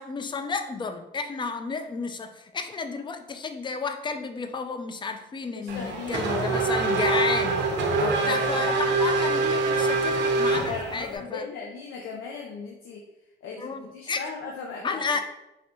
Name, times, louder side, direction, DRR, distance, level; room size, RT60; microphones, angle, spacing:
voice 1, 0.0-11.5 13.6-14.2 14.8-15.2, left 4 dB, 25° left, 8 dB, 0.3 m, -32 dB
voice 2, 5.5-6.7 8.0-8.8 10.7-13.0 13.4-15.0, left 5 dB, 90° left, 0 dB, 0.5 m, -37 dB
Race car auto racing / Accelerating revving vroom, 5.7-11.2, right 3 dB, 65° right, 0.7 m, -25 dB
4.0 x 2.2 x 2.9 m, 0.93 s
cardioid pair, 90°, 20 cm